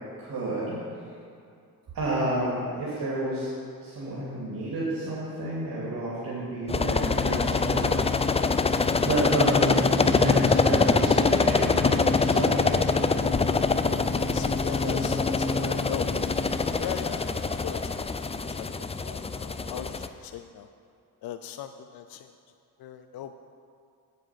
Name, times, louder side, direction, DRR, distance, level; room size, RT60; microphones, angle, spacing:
voice 1, 0.2-0.7 1.9-3.5 3.8-8.2 9.0-12.9 14.6-15.1, right 1 dB, 70° right, -7 dB, 2.6 m, -30 dB
sound 1, 6.7-20.1, left 4 dB, 15° left, 0.4 m, -24 dB
voice 2, 14.3-16.1 16.8-18.2 18.5-20.7 21.2-22.3 22.8-23.3, left 10 dB, 75° left, 9 dB, 0.5 m, -39 dB
8.9 x 8.4 x 5.8 m, 2.4 s
cardioid pair, 70°, 37 cm